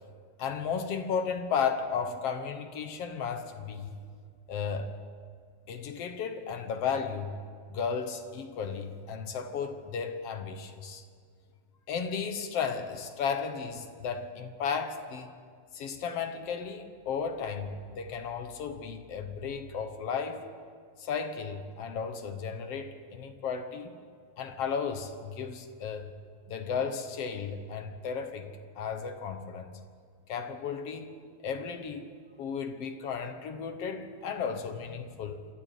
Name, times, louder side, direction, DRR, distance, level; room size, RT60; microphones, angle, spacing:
voice 1, 0.4-4.0 4.5-5.0 5.7-7.4 7.7-11.0 11.9-15.3 15.7-20.4 21.0-23.9 24.4-26.1 26.5-29.9 30.3-31.1 31.4-32.1 32.4-35.5, left 6 dB, 60° left, 7 dB, 1.8 m, -34 dB
27.5 x 13.0 x 8.2 m, 2.1 s
omnidirectional pair, 3.8 m